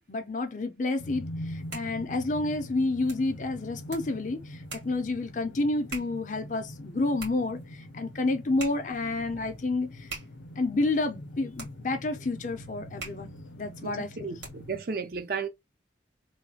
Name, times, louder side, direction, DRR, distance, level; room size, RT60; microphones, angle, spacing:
voice 1, 0.1-10.1 10.6-14.3, left 2 dB, 40° left, 0.5 m, -30 dB
sound 1, 1.0-14.8, left 1 dB, 85° left, 0.6 m, -43 dB
sound 2, 1.4-14.8, right 4 dB, 70° right, 1.6 m, -47 dB
voice 2, 13.8-15.5, right 5 dB, 50° right, 0.5 m, -34 dB
3.2 x 2.3 x 2.6 m
head